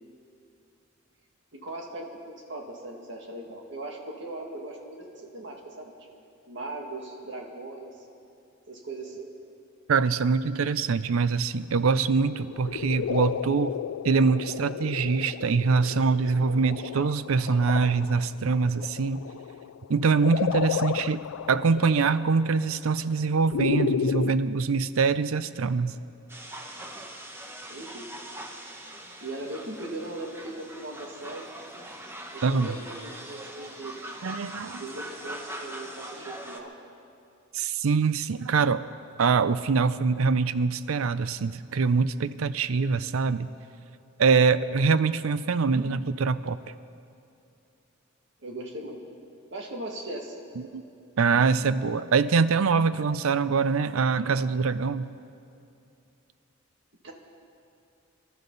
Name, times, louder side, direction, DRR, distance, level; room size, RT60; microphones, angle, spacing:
voice 1, 1.5-6.1 6.5-7.9 8.7-9.3 27.7-28.1 29.2-31.5 32.3-33.9 34.7-36.7 48.4-49.0 49.5-50.3 57.0-57.1, right 2 dB, 60° right, 0 dB, 2.0 m, -39 dB
voice 2, 9.9-13.7 14.0-19.2 19.9-21.2 21.5-25.9 32.4-32.8 34.2-34.9 37.5-38.8 39.2-43.5 44.2-46.6 50.6-50.8 51.2-55.1, right 5 dB, 85° right, 14 dB, 0.5 m, -24 dB
sound 1, 12.3-24.3, left 8 dB, 85° left, 0.3 m, -32 dB
sound 2, 26.3-36.6, right 1 dB, 10° right, 1.0 m, -42 dB
25.0 x 12.5 x 4.0 m, 2.6 s
head